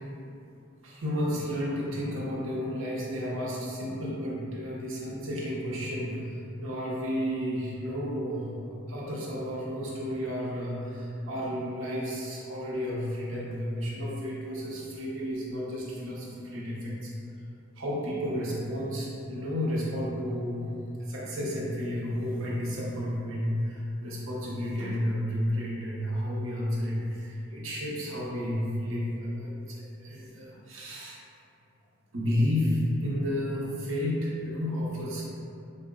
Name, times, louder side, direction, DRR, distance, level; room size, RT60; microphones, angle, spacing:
voice 1, 0.8-6.2 6.6-17.1 17.8-20.7 21.1-31.2 32.1-35.3, equal, 75° right, -5 dB, 0.7 m, -32 dB
3.9 x 2.1 x 3.6 m, 2.6 s
head